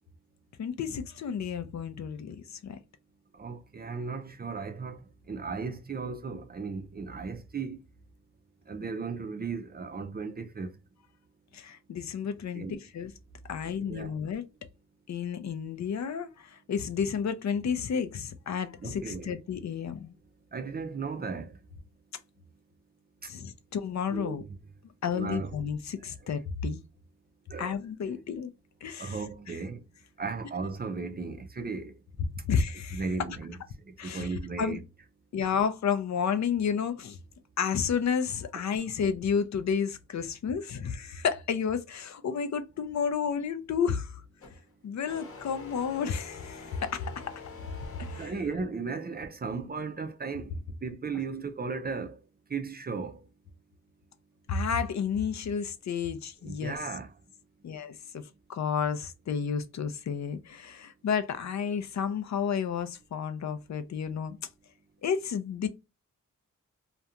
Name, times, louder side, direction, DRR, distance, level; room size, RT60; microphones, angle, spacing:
voice 1, 0.6-2.8 11.5-13.1 13.5-14.5 15.1-20.1 23.3-24.4 25.0-26.8 27.6-28.5 28.8-29.2 29.5-29.6 32.5-33.0 34.0-34.8 35.3-37.2 37.6-44.2 44.8-47.1 48.0-48.3 54.5-56.8 57.6-64.4 65.0-65.7, left 6 dB, 65° left, 0.5 m, -31 dB
voice 2, 3.4-5.0 5.3-7.8 8.7-10.7 12.5-12.8 13.8-14.1 18.8-19.3 20.5-21.5 24.1-24.4 25.1-25.5 27.5-27.8 29.0-29.8 30.2-31.9 32.9-33.6 34.0-34.8 48.2-50.5 50.8-52.1 52.5-53.2 56.4-57.1, right 4 dB, 30° right, 0.4 m, -35 dB
sound 1, 44.4-44.6 45.1-48.7, left 4 dB, 45° left, 0.9 m, -46 dB
2.4 x 2.2 x 2.8 m
wide cardioid pair, 85°, 31 cm